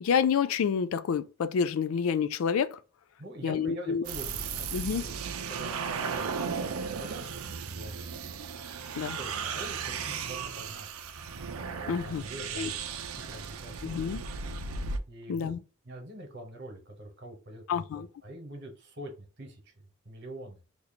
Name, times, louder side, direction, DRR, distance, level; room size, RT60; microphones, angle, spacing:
voice 1, 0.0-2.8 3.4-4.0 4.7-5.0 9.0-9.2 11.9-12.2 12.6-12.7 13.8-14.2 15.3-15.6 17.7-18.1, left 6 dB, 75° left, 0.3 m, -28 dB
voice 2, 3.2-4.7 5.0-8.0 9.0-10.9 11.8-12.8 13.1-14.0 15.1-15.5 15.8-19.7 20.0-20.6, right 1 dB, 55° right, 1.2 m, -44 dB
sound 1, 4.0-15.0, right 5 dB, 80° right, 0.5 m, -36 dB
2.9 x 2.7 x 4.2 m
head